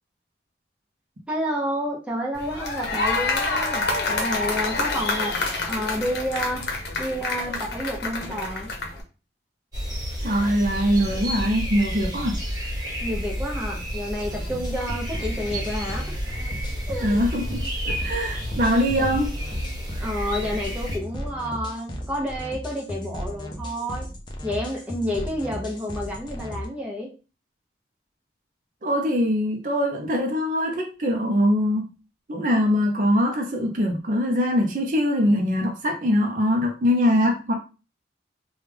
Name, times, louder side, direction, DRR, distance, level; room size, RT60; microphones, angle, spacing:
voice 1, 1.3-6.6 7.0-8.7 13.0-16.2 16.9-17.2 19.0-19.1 20.0-24.1 24.4-27.1, equal, 5° right, -3 dB, 0.8 m, -30 dB
sound 1, 2.3-9.0, left 3 dB, 65° left, 0.8 m, -27 dB
sound 2, 9.7-21.0, equal, 25° right, 1.3 m, -31 dB
voice 2, 10.2-12.3 17.0-19.3 28.8-31.9 32.3-37.5, equal, 45° right, 1 dB, 0.6 m, -22 dB
sound 3, 14.3-26.7, equal, 25° left, 0.5 m, -35 dB
3.3 x 2.3 x 3.3 m, 0.33 s
head